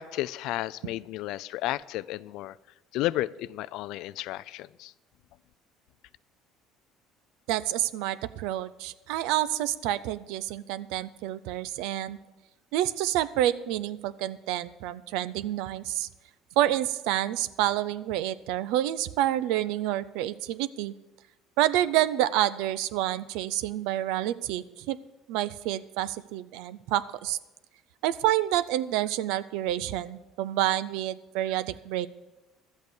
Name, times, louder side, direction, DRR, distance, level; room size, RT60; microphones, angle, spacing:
voice 1, 0.0-2.6 2.9-4.9, left 15 dB, 70° left, 19 dB, 0.3 m, -32 dB
voice 2, 7.5-12.2 12.7-16.1 16.6-20.9 21.6-25.0 25.3-27.4 28.0-32.1, right 13 dB, 85° right, 16 dB, 0.5 m, -28 dB
12.5 x 8.2 x 6.6 m, 1.1 s
cardioid pair, 120°, 0 cm